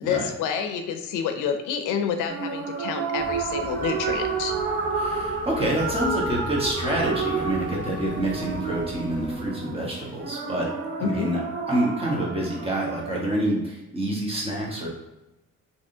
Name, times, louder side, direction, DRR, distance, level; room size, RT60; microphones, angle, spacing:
voice 1, 0.0-4.5 11.0-11.3, left 7 dB, 90° left, 6 dB, 0.5 m, -28 dB
sound 1, 2.3-13.2, right 4 dB, 40° right, 0.6 m, -30 dB
sound 2, 3.2-9.5, left 2 dB, 25° left, 0.5 m, -40 dB
voice 2, 5.0-10.7 11.0-11.4 11.7-14.9, right 1 dB, 20° right, -3 dB, 1.2 m, -27 dB
3.3 x 2.8 x 2.7 m, 1.0 s
cardioid pair, 90°, 30 cm